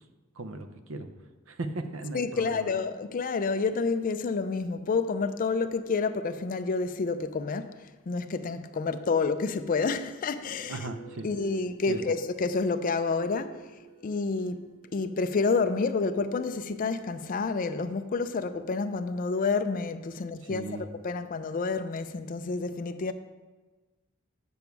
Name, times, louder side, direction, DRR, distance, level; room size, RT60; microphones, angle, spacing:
voice 1, 0.4-1.1 1.5-2.7 10.7-11.3 11.9-12.0 20.4-20.8, right 2 dB, 65° right, 0.7 m, -37 dB
voice 2, 2.1-7.7 8.1-10.8 11.2-13.6 14.0-14.6 14.9-23.1, left 4 dB, 40° left, 0.4 m, -29 dB
sound 1, 8.8-18.9, right 2 dB, 20° right, 1.0 m, -52 dB
7.1 x 6.9 x 4.6 m
head